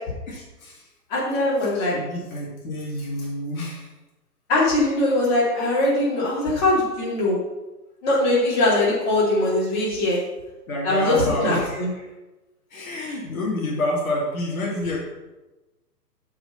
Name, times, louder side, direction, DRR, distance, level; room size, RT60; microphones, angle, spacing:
voice 1, 0.3-0.8 1.6-3.9 10.7-11.8 12.7-15.0, left 1 dB, 55° left, -5 dB, 3.1 m, -28 dB
voice 2, 1.1-2.0 4.5-7.4 8.0-10.2 10.8-11.9, left 1 dB, 30° left, -7 dB, 3.7 m, -21 dB
8.8 x 5.9 x 5.8 m, 1.1 s
hypercardioid pair, 155°, 49 cm